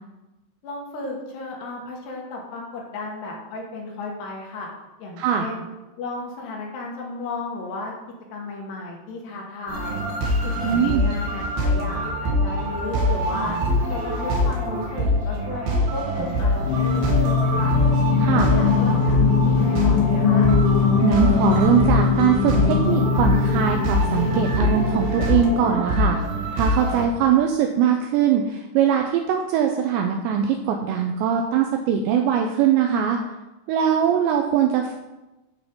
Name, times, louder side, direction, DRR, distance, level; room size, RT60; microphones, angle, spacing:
voice 1, 0.6-4.7 5.0-5.6 6.0-7.9 8.3-10.0 10.4-13.6 13.9-17.8 18.3-20.5, left 2 dB, 65° left, -1 dB, 3.2 m, -34 dB
sound 1, 9.7-27.1, equal, 55° right, 3.2 m, -24 dB
voice 2, 10.6-11.1 18.2-18.5 21.0-26.2 26.5-33.2 33.7-34.9, right 8 dB, 85° right, 3 dB, 2.5 m, -21 dB
Singing, 16.6-25.5, left 5 dB, 85° left, 2.5 m, -21 dB
9.7 x 6.1 x 5.2 m, 1.1 s
omnidirectional pair, 5.7 m